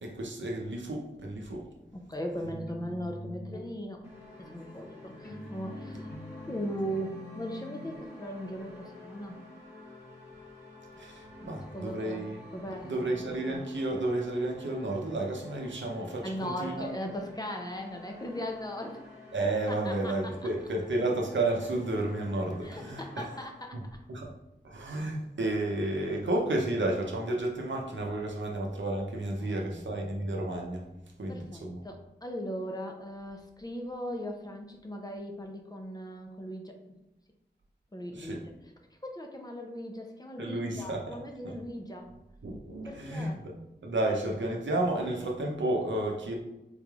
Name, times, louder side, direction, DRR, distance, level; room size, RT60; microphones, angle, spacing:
voice 1, 0.0-1.7 11.0-12.4 12.8-17.0 19.3-23.3 23.7-23.8 24.1-24.3 24.6-30.8 31.2-31.8 38.1-38.4 40.4-41.2 41.4-41.5 42.4-43.5 43.8-46.3, right 2 dB, 80° right, 0 dB, 0.6 m, -32 dB
voice 2, 1.9-4.0 4.4-9.4 11.7-12.3 12.5-13.2 16.2-19.0 19.7-20.1 22.6-24.0 29.4-29.8 31.3-37.0 37.9-38.4 39.0-42.1 42.8-43.4, equal, 20° left, 2 dB, 0.5 m, -38 dB
sound 1, 2.4-8.0, left 1 dB, 55° left, 0.8 m, -45 dB
sound 2, 4.0-23.4, left 2 dB, 10° right, 1.1 m, -50 dB
3.8 x 3.1 x 2.3 m, 0.94 s
wide cardioid pair, 65°, 19 cm